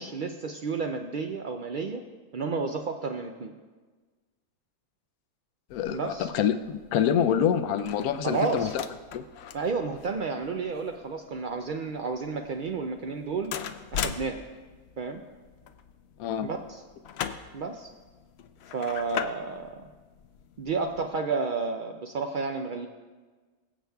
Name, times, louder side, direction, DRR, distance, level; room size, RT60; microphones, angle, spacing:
voice 1, 0.0-2.0 2.3-3.5 5.9-6.3 8.2-8.7 9.5-13.5 13.9-14.4 15.0-15.2 16.4-16.8 17.5-17.9 18.7-19.9 20.6-22.9, right 4 dB, 85° right, 4 dB, 0.4 m, -31 dB
voice 2, 5.7-8.8 9.1-9.2 16.2-16.5, left 8 dB, 85° left, 8 dB, 1.1 m, -26 dB
sound 1, 5.7-21.1, left 8 dB, 65° left, 0.6 m, -41 dB
22.0 x 7.8 x 2.3 m, 1.4 s
omnidirectional pair, 1.5 m